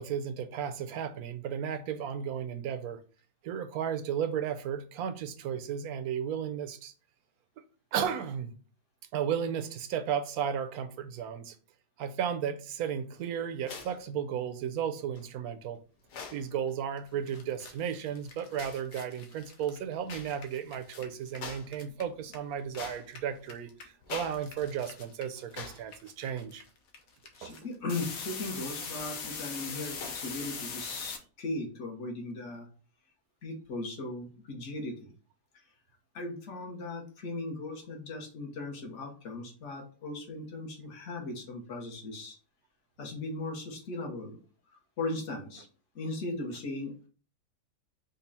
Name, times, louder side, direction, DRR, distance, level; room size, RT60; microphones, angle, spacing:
voice 1, 0.0-3.0 3.4-6.9 7.9-8.5 9.1-11.6 12.0-15.8 16.3-26.6 27.4-27.6, right 8 dB, 75° right, 1.0 m, -34 dB
sound 1, 13.6-14.0 15.2-15.3 16.0-16.5 17.6-17.9 18.5-18.9 20.1-20.4 20.7-20.9 21.4-21.8 22.1-23.4 24.0-24.5 24.8-24.9 25.5-25.9 26.3-26.4 27.9-28.3 28.9-29.3 30.0-30.3, left 5 dB, 85° left, 1.6 m, -44 dB
sound 2, 17.0-17.1 17.3-22.8 23.0-31.2, left 5 dB, 65° left, 1.3 m, -42 dB
voice 2, 27.4-32.7 33.4-35.1 36.1-42.4 43.0-44.4 45.0-45.7 45.9-47.1, left 2 dB, 50° left, 1.4 m, -38 dB
5.3 x 2.4 x 4.1 m
omnidirectional pair, 1.7 m